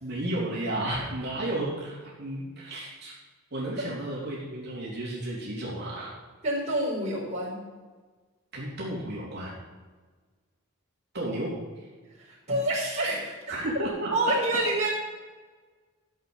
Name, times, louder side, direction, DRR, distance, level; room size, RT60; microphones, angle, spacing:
voice 1, 0.0-3.1 3.5-6.1 8.5-9.5 11.1-11.5 13.5-14.1, right 1 dB, 50° right, -6 dB, 3.4 m, -32 dB
voice 2, 6.4-7.7 12.3-13.3 14.1-14.9, right 1 dB, 30° right, -6 dB, 4.6 m, -27 dB
14.0 x 8.2 x 5.5 m, 1.4 s
head